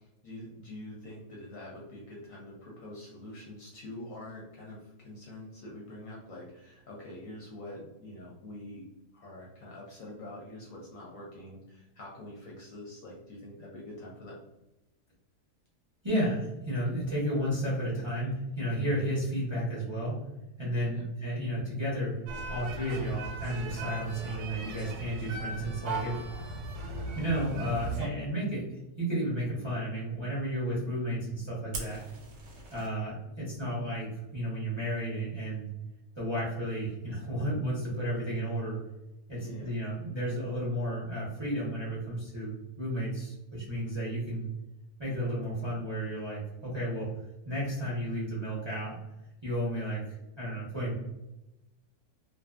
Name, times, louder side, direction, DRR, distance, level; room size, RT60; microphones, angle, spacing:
voice 1, 0.0-8.9 9.1-14.4 20.7-21.0 39.4-39.7 43.7-43.9, left 1 dB, 65° left, -3 dB, 0.9 m, -45 dB
voice 2, 16.0-20.2 20.6-22.2 22.5-26.2 27.2-32.0 32.7-34.1 34.3-35.7 36.1-38.8 39.3-44.5 45.0-47.1 47.4-48.9 49.4-50.0 50.4-51.0, equal, 25° right, -7 dB, 0.6 m, -32 dB
sound 1, 22.3-28.1, right 3 dB, 90° right, 1.1 m, -38 dB
Fire, 31.7-32.9, right 2 dB, 55° right, 0.9 m, -42 dB
2.6 x 2.3 x 2.3 m, 0.94 s
omnidirectional pair, 1.7 m